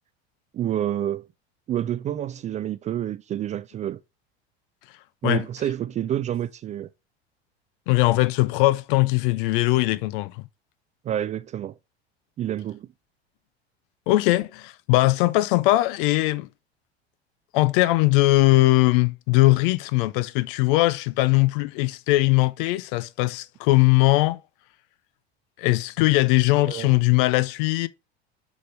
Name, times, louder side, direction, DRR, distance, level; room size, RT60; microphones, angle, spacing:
voice 1, 0.5-1.2 1.7-4.0 5.2-6.9 11.0-11.7 12.4-12.9 26.7-26.9, right 11 dB, 25° right, 0.4 m, -28 dB
voice 2, 7.9-10.5 14.1-16.5 17.5-24.4 25.6-27.9, left 19 dB, 55° left, 0.6 m, -20 dB
6.1 x 5.1 x 3.2 m
figure-of-eight pair, 75°, 32 cm